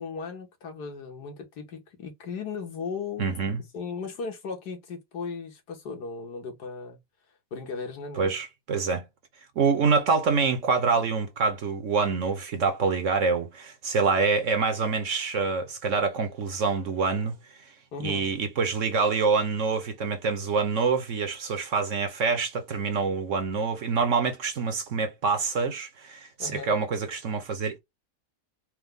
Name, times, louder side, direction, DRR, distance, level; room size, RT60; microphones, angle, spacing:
voice 1, 0.0-3.3 3.7-7.0 7.5-8.4 17.9-18.3 26.4-26.7, left 5 dB, 85° left, 1.9 m, -36 dB
voice 2, 3.2-3.6 8.2-9.0 9.6-17.3 18.0-27.8, right 4 dB, 55° right, 1.0 m, -26 dB
4.6 x 2.2 x 3.5 m
omnidirectional pair, 1.7 m